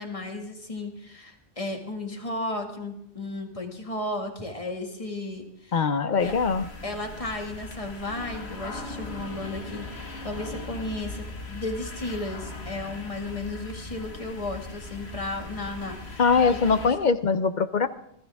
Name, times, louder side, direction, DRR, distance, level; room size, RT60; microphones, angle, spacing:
voice 1, 0.0-5.9 6.2-6.3 6.8-9.9 10.2-16.9, left 2 dB, 30° left, 3 dB, 2.1 m, -34 dB
voice 2, 5.7-6.7 16.2-17.9, left 5 dB, 45° left, 12 dB, 0.8 m, -22 dB
sound 1, 6.2-16.9, left 2 dB, 70° left, 2.1 m, -39 dB
21.0 x 13.5 x 3.6 m, 0.74 s
omnidirectional pair, 1.1 m